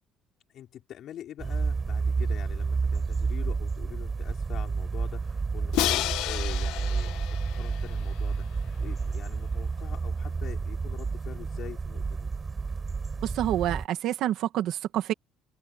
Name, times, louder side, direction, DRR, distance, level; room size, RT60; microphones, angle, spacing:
voice 1, 0.5-12.3, left 11 dB, 45° left, 5.3 m, -45 dB
sound 1, 1.4-13.9, right 4 dB, 20° right, 6.5 m, -30 dB
Crash cymbal, 5.7-8.7, left 16 dB, 90° left, 1.0 m, -31 dB
voice 2, 13.2-15.1, right 12 dB, 60° right, 1.9 m, -28 dB
cardioid pair, 165°, 0 cm